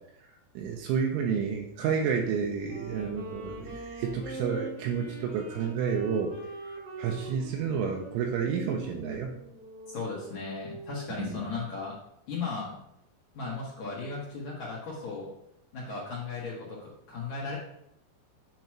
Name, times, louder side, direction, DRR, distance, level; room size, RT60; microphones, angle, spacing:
voice 1, 0.6-6.3 6.6-9.3 11.2-11.5, right 6 dB, 80° right, 1 dB, 3.0 m, -30 dB
Wind instrument woodwind instrument, 2.5-11.2, right 3 dB, 45° right, 1.3 m, -43 dB
voice 2, 9.9-11.9 12.3-12.8 13.3-15.3 15.7-17.6, left 4 dB, 70° left, -5 dB, 1.7 m, -36 dB
9.1 x 3.1 x 5.9 m, 0.77 s
omnidirectional pair, 5.8 m